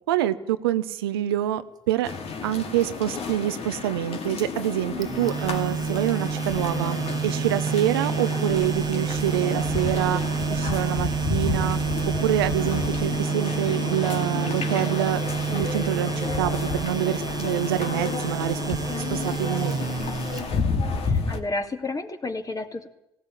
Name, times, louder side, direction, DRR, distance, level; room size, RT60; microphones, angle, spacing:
voice 1, 0.1-1.6 1.9-2.1 2.4-10.2 10.5-11.8 12.1-15.2 15.5-18.8 19.1-19.9, right 12 dB, 85° right, 11 dB, 0.8 m, -26 dB
sound 1, 2.0-21.4, left 5 dB, 55° left, 2.6 m, -31 dB
sound 2, 2.4-20.7, equal, 90° left, 7.5 m, -44 dB
sound 3, 5.0-21.0, right 7 dB, 30° right, 1.1 m, -29 dB
voice 2, 21.1-22.9, left 2 dB, 30° left, 5 dB, 2.6 m, -31 dB
18.0 x 17.0 x 9.2 m, 0.85 s
hypercardioid pair, 50°, 12 cm